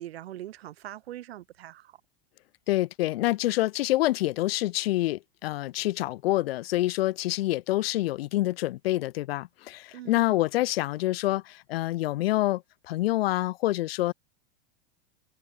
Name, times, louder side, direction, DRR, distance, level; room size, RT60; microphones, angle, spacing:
voice 1, 0.0-2.0 9.9-10.4, right 13 dB, 85° right, 4.0 m, -42 dB
voice 2, 2.7-14.1, left 16 dB, 75° left, 3.5 m, -27 dB
supercardioid pair, 140°, 30 cm